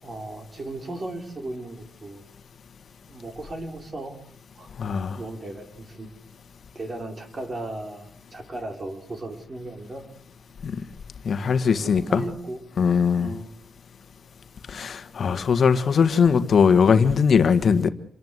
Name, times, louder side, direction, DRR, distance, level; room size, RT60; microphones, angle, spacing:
voice 1, 0.0-2.2 3.1-4.2 4.5-6.1 6.7-10.1 11.6-12.6 13.2-13.5, right 2 dB, 35° right, 5 dB, 4.9 m, -36 dB
voice 2, 4.8-5.2 10.6-10.8 11.2-12.2 12.8-13.3 14.7-17.9, left 6 dB, 60° left, 9 dB, 1.6 m, -20 dB
27.5 x 18.5 x 8.1 m, 0.62 s
wide cardioid pair, 125°, 0 cm